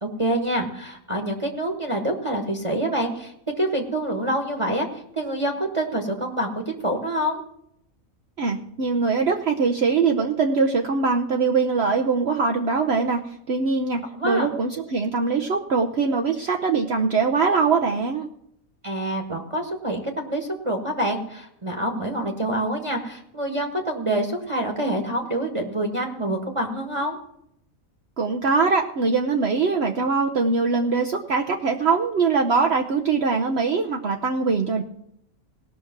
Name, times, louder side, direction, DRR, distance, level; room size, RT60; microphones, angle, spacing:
voice 1, 0.0-7.4 14.1-14.5 18.8-27.2, right 1 dB, 25° right, 2 dB, 1.5 m, -26 dB
voice 2, 8.4-18.3 28.2-34.8, right 4 dB, 55° right, 2 dB, 1.1 m, -22 dB
18.0 x 6.2 x 6.0 m, 0.74 s
omnidirectional pair, 1.4 m